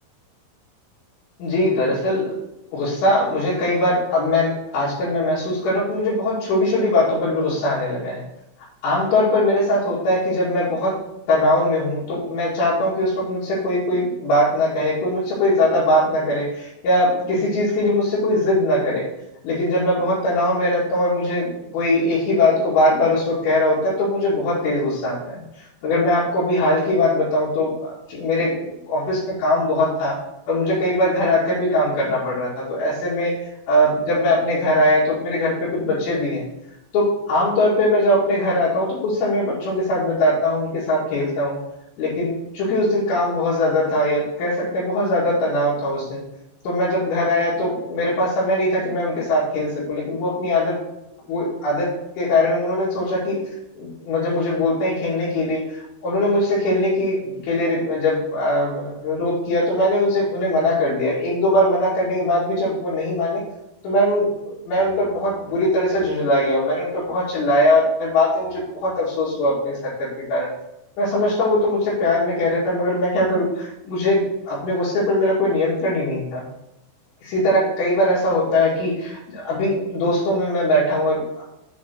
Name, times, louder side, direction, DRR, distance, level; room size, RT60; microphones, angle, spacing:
voice 1, 1.4-2.3 2.7-8.2 8.8-11.0 11.3-19.1 19.4-30.2 30.5-36.5 36.9-41.6 42.0-46.2 46.6-50.8 51.3-53.4 53.8-63.4 63.8-70.5 71.0-76.5 77.2-81.5, left 1 dB, 70° left, -11 dB, 4.6 m, -21 dB
8.3 x 4.2 x 6.2 m, 0.90 s
omnidirectional pair, 5.6 m